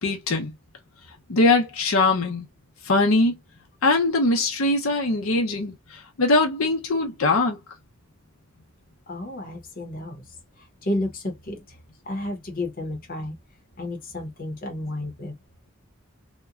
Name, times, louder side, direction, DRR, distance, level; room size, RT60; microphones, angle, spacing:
voice 1, 0.0-0.5 1.3-2.5 2.8-3.3 3.8-7.6, left 2 dB, 80° left, 0.7 m, -21 dB
voice 2, 9.1-11.8 12.0-13.4 13.8-15.4, left 1 dB, 45° left, 0.8 m, -32 dB
2.9 x 2.2 x 2.4 m
head